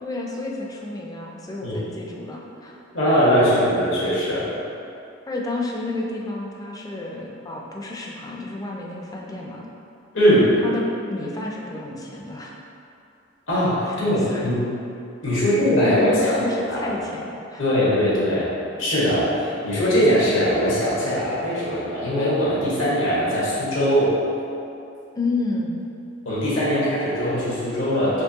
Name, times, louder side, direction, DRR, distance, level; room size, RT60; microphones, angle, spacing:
voice 1, 0.0-2.8 5.3-9.6 10.6-12.5 13.9-14.5 15.3-15.5 15.8-17.6 25.1-25.8, left 2 dB, 20° left, -2 dB, 0.4 m, -31 dB
voice 2, 2.9-4.4 10.1-10.5 13.5-14.6 15.2-16.4 16.7-16.9 17.6-18.5 18.8-24.1 26.2-28.2, equal, 85° left, -9 dB, 1.4 m, -20 dB
4.4 x 3.0 x 2.8 m, 2.6 s
head